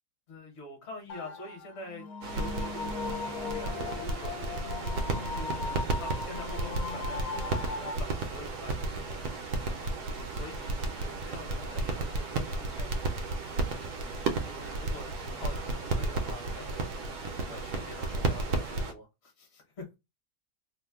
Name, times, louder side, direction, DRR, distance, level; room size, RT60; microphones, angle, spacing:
voice 1, 0.3-2.1 2.3-4.6 5.3-9.0 10.3-13.3 14.4-16.9 17.5-19.9, left 2 dB, 45° left, 1.1 m, -46 dB
sound 1, 1.1-8.0, left 4 dB, 70° left, 1.1 m, -38 dB
sound 2, 2.2-18.9, right 3 dB, 75° right, 1.0 m, -33 dB
2.8 x 2.1 x 3.4 m
omnidirectional pair, 1.8 m